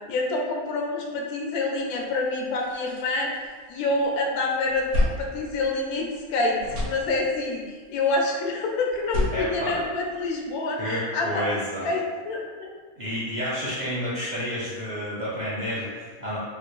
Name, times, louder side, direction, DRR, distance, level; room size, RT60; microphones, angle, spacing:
voice 1, 0.1-3.3 3.7-4.9 5.2-11.5 11.8-12.7, left 2 dB, 85° left, 0 dB, 1.1 m, -27 dB
sound 1, 1.9-2.0 2.4-4.1 4.4-6.3 6.5-7.6 8.9-10.5, left 1 dB, 75° right, 1.3 m, -31 dB
voice 2, 9.3-9.8 10.8-11.9 13.0-16.4, equal, 50° right, -9 dB, 0.5 m, -30 dB
3.3 x 2.5 x 3.0 m, 1.5 s
omnidirectional pair, 1.5 m